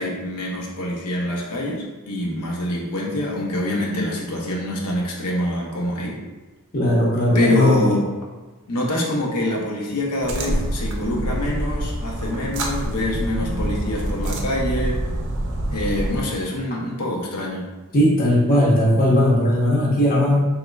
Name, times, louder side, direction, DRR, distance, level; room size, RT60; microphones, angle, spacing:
voice 1, 0.0-6.2 7.3-8.1 8.7-15.0 15.7-17.7, left 1 dB, 90° left, -3 dB, 0.7 m, -25 dB
voice 2, 6.7-7.9 17.9-20.5, left 1 dB, 40° left, -5 dB, 0.7 m, -18 dB
sound 1, 10.2-16.2, right 1 dB, 55° right, 0.5 m, -26 dB
3.6 x 3.0 x 2.2 m, 1.2 s
head